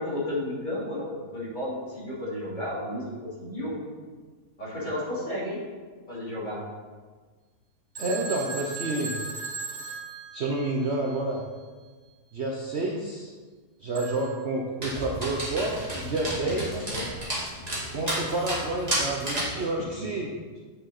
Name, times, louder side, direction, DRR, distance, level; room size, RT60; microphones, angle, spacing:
voice 1, 0.0-3.7 4.6-5.6 6.1-6.6 16.4-17.0 19.8-20.1, left 1 dB, 30° left, -8 dB, 3.2 m, -33 dB
voice 2, 8.0-9.2 10.3-11.4 12.3-13.3 13.8-16.9 17.9-20.6, right 2 dB, 50° right, -1 dB, 1.0 m, -29 dB
Telephone, 8.0-11.0 14.0-14.4, right 4 dB, 85° right, 2.9 m, -37 dB
Dog, 14.8-19.6, right 1 dB, 25° right, 2.5 m, -32 dB
9.2 x 6.7 x 4.2 m, 1.4 s
omnidirectional pair, 1.7 m